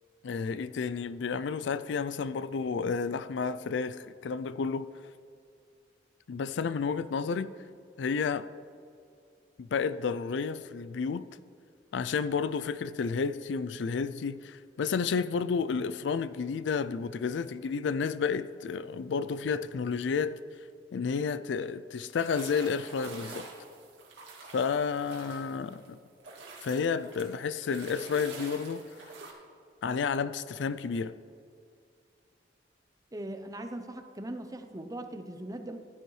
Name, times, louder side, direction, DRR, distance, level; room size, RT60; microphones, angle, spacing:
voice 1, 0.2-4.9 6.3-7.5 8.0-8.5 9.6-11.3 11.9-20.4 20.9-23.5 24.5-26.0 26.6-28.8 29.8-31.2, left 5 dB, 75° left, 0.4 m, -31 dB
sound 1, 21.9-25.9 26.2-29.3, right 3 dB, 75° right, 2.2 m, -47 dB
voice 2, 33.1-35.8, right 1 dB, 20° right, 0.6 m, -40 dB
16.0 x 10.5 x 3.2 m
head